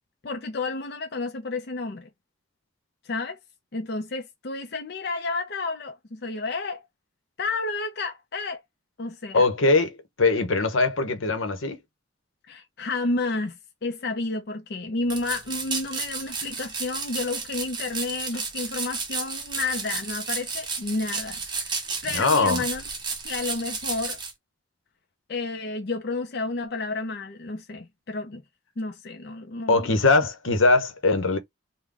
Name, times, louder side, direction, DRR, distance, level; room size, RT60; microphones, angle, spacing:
voice 1, 0.2-2.1 3.0-3.4 3.7-6.9 7.4-8.6 9.0-9.5 12.5-22.8 23.2-24.2 25.3-28.4 28.8-29.9, left 3 dB, 55° left, 0.5 m, -31 dB
voice 2, 9.3-11.8 22.1-22.6 29.7-31.4, left 3 dB, 85° left, 0.9 m, -21 dB
sound 1, 15.1-24.3, right 4 dB, 20° right, 0.7 m, -32 dB
3.7 x 2.2 x 3.4 m
head